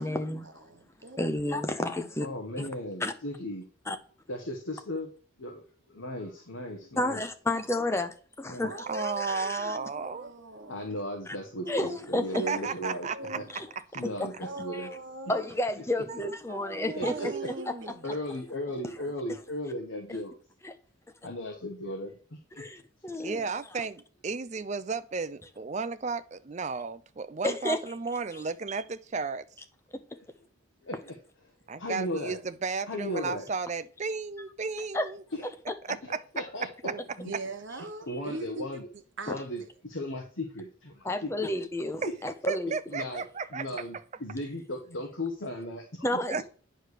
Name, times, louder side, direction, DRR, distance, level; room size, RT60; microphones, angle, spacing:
voice 1, 0.0-0.6 1.2-2.3 2.6-2.7 3.0-3.1 3.9-4.0 7.0-9.8 11.3-11.4 11.7-12.5 13.5-13.7 14.2-14.9 15.3-17.3 20.6-20.7 22.6-23.5 27.4-27.8 29.9-30.0 34.9-35.1 35.7-35.8 38.1-38.2 39.3-39.4 41.0-42.7 46.0-46.4, left 1 dB, 15° left, 0.6 m, -31 dB
voice 2, 0.7-1.8 8.6-10.9 11.6-12.1 12.4-12.7 13.1-13.6 14.4-15.5 17.0-18.2 18.7-18.8 36.8-38.8 39.2-39.7, right 2 dB, 60° right, 1.1 m, -41 dB
voice 3, 2.2-3.7 4.3-5.1 5.4-7.2 8.5-8.7 10.7-13.1 13.3-13.5 13.9-14.9 17.0-17.3 18.0-20.3 21.2-22.6 30.2-30.3 30.8-31.2 31.8-32.4 32.9-33.5 35.3-35.5 36.0-37.3 38.1-38.9 39.3-41.5 42.9-43.2 43.5-46.2, left 1 dB, 65° left, 1.2 m, -36 dB
voice 4, 8.9-10.3 12.5-13.4 16.1-18.0 23.2-29.5 31.7-35.2 35.9-36.2 42.5-43.7 46.3-46.4, right 4 dB, 35° right, 0.4 m, -34 dB
9.2 x 3.3 x 6.6 m
head